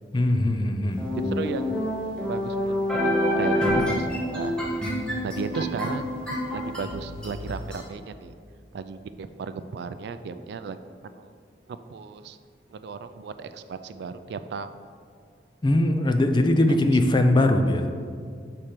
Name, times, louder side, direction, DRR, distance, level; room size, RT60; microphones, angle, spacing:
voice 1, 0.1-1.0 15.6-18.1, left 1 dB, 25° left, 6 dB, 0.4 m, -21 dB
sound 1, 1.0-7.8, left 1 dB, 5° left, 1.4 m, -27 dB
voice 2, 1.1-1.9 2.2-4.6 5.2-6.1 6.5-8.3 8.7-10.8 11.0-11.3 11.7-12.4 12.7-14.7 16.7-16.8, right 5 dB, 65° right, 11 dB, 0.3 m, -35 dB
6.0 x 4.3 x 5.0 m, 2.1 s
head